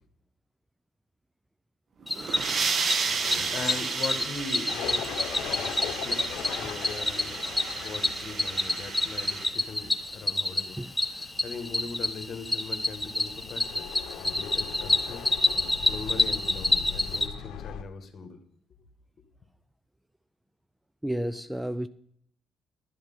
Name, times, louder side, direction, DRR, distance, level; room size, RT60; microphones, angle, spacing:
sound 1, 2.0-9.5, right 5 dB, 50° right, 1.2 m, -33 dB
Cricket, 2.1-17.3, left 2 dB, 10° left, 1.2 m, -29 dB
voice 1, 2.4-5.1 5.5-10.8 11.1-13.9 14.2-15.2 15.9-18.4, left 4 dB, 50° left, 1.7 m, -40 dB
sound 2, 4.7-17.8, left 9 dB, 80° left, 0.9 m, -40 dB
voice 2, 21.0-21.9, right 1 dB, 5° right, 0.5 m, -31 dB
12.0 x 8.0 x 5.6 m
cardioid pair, 80°, 0 cm